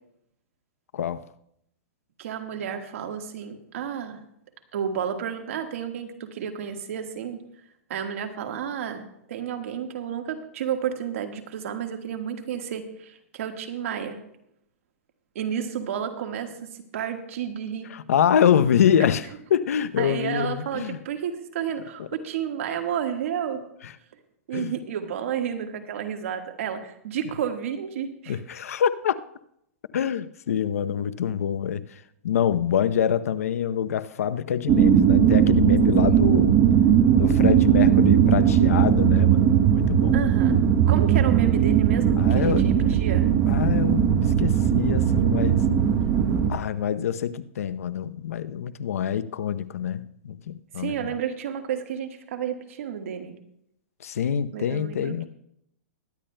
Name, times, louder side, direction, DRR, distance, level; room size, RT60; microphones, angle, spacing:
voice 1, 0.9-1.3 17.9-21.0 22.0-22.1 24.5-24.7 28.3-29.2 29.9-36.6 37.2-40.2 42.2-42.7 43.5-45.6 46.5-51.0 54.0-55.2, left 9 dB, 85° left, 0.7 m, -25 dB
voice 2, 2.2-4.2 4.7-7.4 7.9-14.2 15.3-17.9 20.0-23.6 24.5-28.4 36.1-36.2 40.1-40.6 40.9-43.3 50.8-53.4 54.5-55.3, right 8 dB, 65° right, 1.6 m, -31 dB
sound 1, 34.7-46.5, right 9 dB, 30° right, 0.9 m, -19 dB
21.5 x 10.0 x 2.2 m
hypercardioid pair, 150°, 8 cm